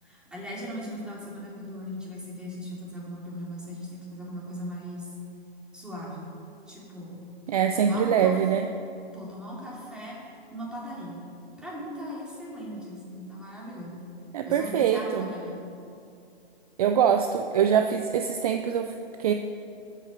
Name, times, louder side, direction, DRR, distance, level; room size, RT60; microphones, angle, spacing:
voice 1, 0.0-5.1 5.7-6.3 6.7-7.2 7.7-8.3 9.1-10.2 10.5-11.2 11.6-14.0 14.5-15.6, equal, 5° right, -6 dB, 3.1 m, -38 dB
voice 2, 7.5-8.7 14.3-15.3 16.8-19.3, right 8 dB, 40° right, 6 dB, 0.6 m, -24 dB
13.0 x 8.4 x 6.8 m, 2.5 s
hypercardioid pair, 135°, 30 cm